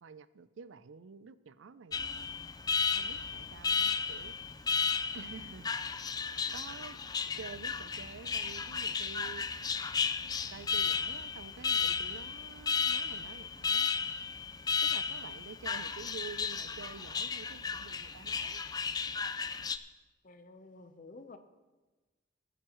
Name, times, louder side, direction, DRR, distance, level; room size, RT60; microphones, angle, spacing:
voice 1, 0.0-2.0 2.9-4.3 5.1-5.7 6.5-7.0 7.4-9.4 10.5-13.9 14.8-18.6, right 5 dB, 80° right, 15 dB, 0.5 m, -49 dB
Alarm, 1.9-19.8, left 5 dB, 20° left, 0.4 m, -34 dB
voice 2, 20.2-21.4, left 3 dB, 45° left, 9 dB, 0.8 m, -51 dB
19.5 x 9.3 x 3.1 m, 1.2 s
head